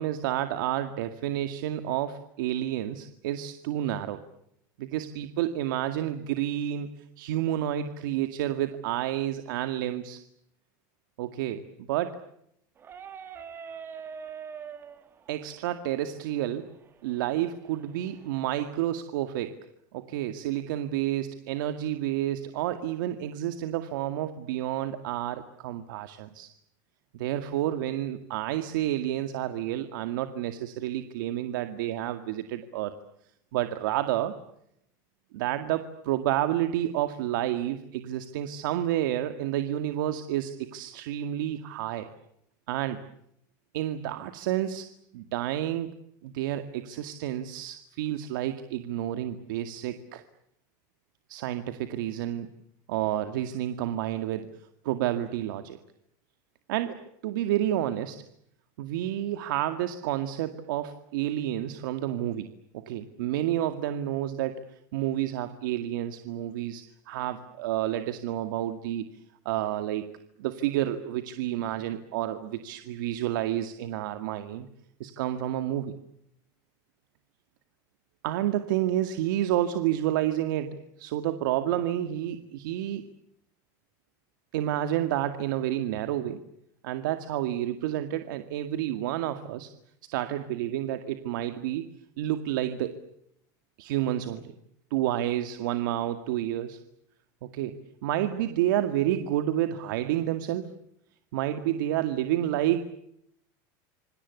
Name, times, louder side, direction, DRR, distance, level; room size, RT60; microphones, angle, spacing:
voice 1, 0.0-4.2 4.8-10.2 11.2-12.2 15.3-16.7 17.0-19.6 19.9-26.5 27.1-32.9 33.5-34.4 35.3-42.1 42.7-43.0 43.7-44.9 45.1-45.9 46.2-50.2 51.3-52.5 52.9-54.5 54.8-55.8 56.7-58.2 58.8-62.5 62.7-64.6 64.9-69.0 69.5-70.1 70.4-74.7 75.0-75.9 78.2-83.1 84.5-86.4 86.8-89.7 90.1-91.9 92.2-93.0 93.8-94.5 94.9-96.8 97.4-97.8 98.0-100.7 101.3-102.8, right 12 dB, 85° right, 9 dB, 2.1 m, -30 dB
sound 1, 12.8-18.4, right 7 dB, 20° right, 2.7 m, -45 dB
27.5 x 25.5 x 8.3 m, 0.75 s
cardioid pair, 170°, 10 cm